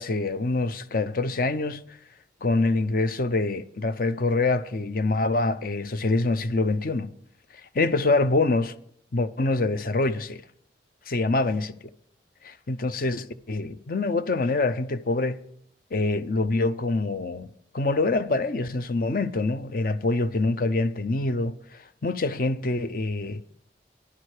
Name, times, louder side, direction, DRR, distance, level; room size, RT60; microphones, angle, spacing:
voice 1, 0.0-1.8 2.4-7.1 7.7-8.7 9.1-10.4 11.1-11.7 12.4-15.4 15.9-17.5 17.7-23.4, left 2 dB, 55° left, 0.7 m, -25 dB
14.5 x 11.5 x 4.9 m
head